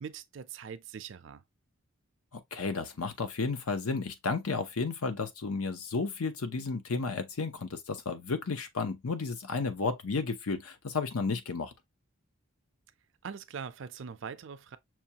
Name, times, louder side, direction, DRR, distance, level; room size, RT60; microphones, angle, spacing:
voice 1, 0.0-1.4 13.2-14.8, right 6 dB, 55° right, 0.4 m, -42 dB
voice 2, 2.3-11.7, left 4 dB, 80° left, 0.7 m, -33 dB
5.9 x 2.3 x 2.8 m
head